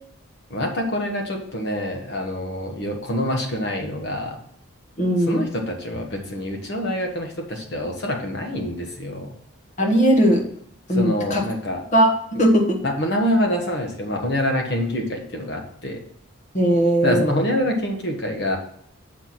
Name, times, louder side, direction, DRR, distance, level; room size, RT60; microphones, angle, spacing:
voice 1, 0.5-4.4 5.3-9.3 10.9-11.8 12.8-16.0 17.0-18.6, left 1 dB, 50° left, 2 dB, 1.2 m, -26 dB
voice 2, 5.0-5.4 9.8-10.5 10.9-11.4 11.9-12.8 16.5-17.3, equal, 35° left, 1 dB, 1.3 m, -18 dB
6.9 x 4.4 x 6.0 m, 0.67 s
head